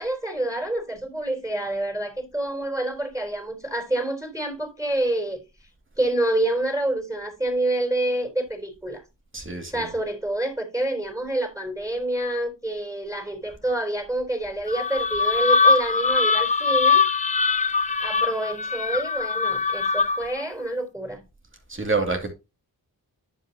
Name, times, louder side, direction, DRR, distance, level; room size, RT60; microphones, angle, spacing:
voice 1, 0.0-5.4 6.0-9.0 9.7-17.0 18.0-21.2, right 1 dB, 10° right, 4.0 m, -27 dB
voice 2, 9.3-9.9 21.7-22.3, right 3 dB, 35° right, 2.5 m, -27 dB
sound 1, 14.7-20.4, left 4 dB, 20° left, 0.4 m, -22 dB
11.0 x 5.6 x 2.9 m
cardioid pair, 65°, 37 cm